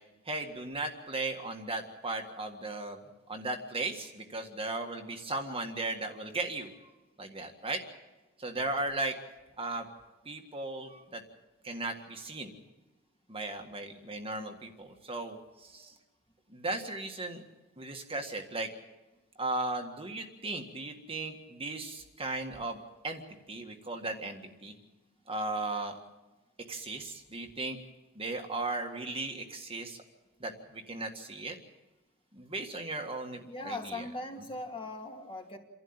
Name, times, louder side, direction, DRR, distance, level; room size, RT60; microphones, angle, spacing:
voice 1, 0.3-3.0 3.3-6.7 7.2-7.8 8.4-9.2 9.6-9.9 10.3-11.2 11.6-12.5 13.3-15.9 16.5-17.4 17.8-18.7 19.4-22.8 23.0-23.2 23.5-24.7 25.3-26.0 26.7-27.8 28.2-30.0 30.4-31.6 32.3-34.0, right 2 dB, 25° right, 4 dB, 1.8 m, -36 dB
voice 2, 33.4-35.6, left 2 dB, 25° left, 2 dB, 2.5 m, -39 dB
28.5 x 12.0 x 8.9 m, 1.1 s
head